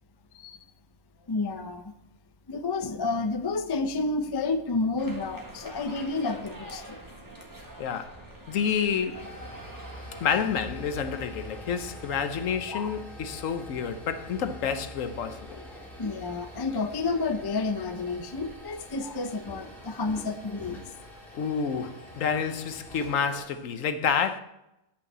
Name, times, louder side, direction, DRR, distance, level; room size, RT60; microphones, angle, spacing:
voice 1, 1.3-1.9 2.5-7.0 10.3-10.5 12.7-12.9 15.5-20.8, left 3 dB, 35° left, 0.4 m, -30 dB
sound 1, 5.0-12.4, right 1 dB, 15° right, 1.4 m, -46 dB
voice 2, 7.8-8.2 8.5-9.3 10.2-15.6 21.3-24.4, left 7 dB, 70° left, 1.1 m, -29 dB
sound 2, 9.0-23.5, equal, ahead, 2.3 m, -45 dB
9.5 x 5.7 x 7.3 m
omnidirectional pair, 1.5 m